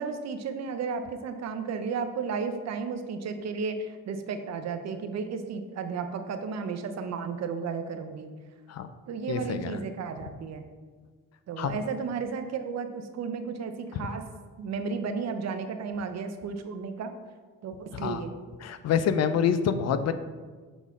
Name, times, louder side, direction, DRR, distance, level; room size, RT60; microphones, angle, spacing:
voice 1, 0.0-8.3 9.1-10.6 11.5-14.2 14.6-17.1 17.6-18.3, right 5 dB, 60° right, 8 dB, 0.7 m, -33 dB
voice 2, 9.3-9.8 11.6-11.8 13.9-14.1 17.9-18.2 18.6-20.1, left 7 dB, 60° left, 11 dB, 0.5 m, -27 dB
6.9 x 4.0 x 3.6 m, 1.5 s
cardioid pair, 90°, 30 cm